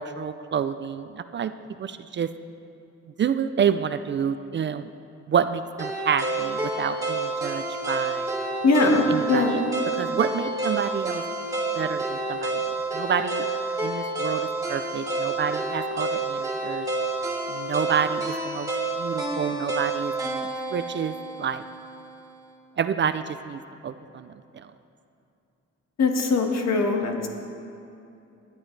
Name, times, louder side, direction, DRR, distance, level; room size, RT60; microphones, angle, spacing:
voice 1, 0.0-1.5 1.8-2.3 3.2-4.9 5.3-8.3 9.1-11.2 11.7-13.5 13.8-16.9 17.5-18.7 19.0-21.6 22.8-24.7, right 7 dB, 40° right, 11 dB, 0.4 m, -28 dB
sound 1, 5.8-21.9, right 2 dB, 10° right, 2.7 m, -29 dB
voice 2, 8.6-9.6 26.0-27.3, left 3 dB, 60° left, 2 dB, 1.6 m, -21 dB
19.0 x 11.0 x 3.3 m, 2.7 s
cardioid pair, 125°, 30 cm